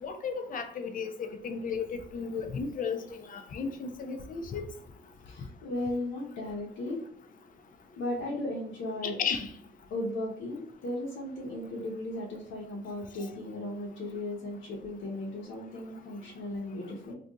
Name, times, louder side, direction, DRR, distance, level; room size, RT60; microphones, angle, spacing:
voice 1, 0.0-4.7 9.0-9.5, left 5 dB, 45° left, 8 dB, 0.5 m, -34 dB
voice 2, 5.3-7.0 8.0-9.1 9.9-17.1, left 1 dB, 75° left, -3 dB, 0.8 m, -36 dB
2.5 x 2.3 x 3.8 m, 0.64 s
cardioid pair, 90°, 20 cm